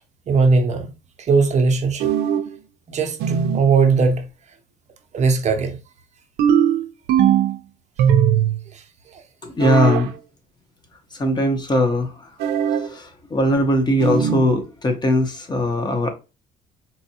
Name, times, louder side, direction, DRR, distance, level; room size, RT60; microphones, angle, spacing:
voice 1, 0.3-0.9 1.2-2.1 2.9-4.3 5.1-5.8 8.7-9.2, right 4 dB, 45° right, 0.6 m, -19 dB
sound 1, 2.0-2.6 3.2-3.7 6.4-7.6 8.0-8.6 9.6-10.1 12.4-12.9 14.0-14.5, right 9 dB, 85° right, 0.4 m, -19 dB
voice 2, 9.4-10.1 11.1-12.4 12.6-16.1, left 1 dB, 25° left, 0.8 m, -20 dB
4.1 x 2.2 x 2.8 m
cardioid pair, 110°, 17 cm